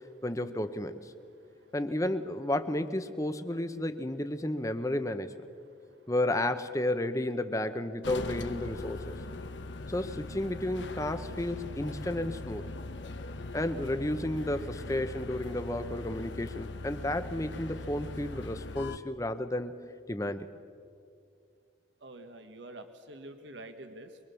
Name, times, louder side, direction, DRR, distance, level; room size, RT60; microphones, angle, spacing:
voice 1, 0.2-1.1 1.7-5.5 6.1-9.1 9.9-12.6 13.5-20.5, left 1 dB, 15° left, 10 dB, 0.8 m, -32 dB
voice 2, 1.4-1.7 5.7-6.0 22.0-24.2, right 1 dB, 80° right, 7 dB, 1.5 m, -48 dB
sound 1, 8.0-19.0, left 2 dB, 80° left, 1.1 m, -40 dB
23.5 x 23.0 x 7.0 m, 2.5 s
head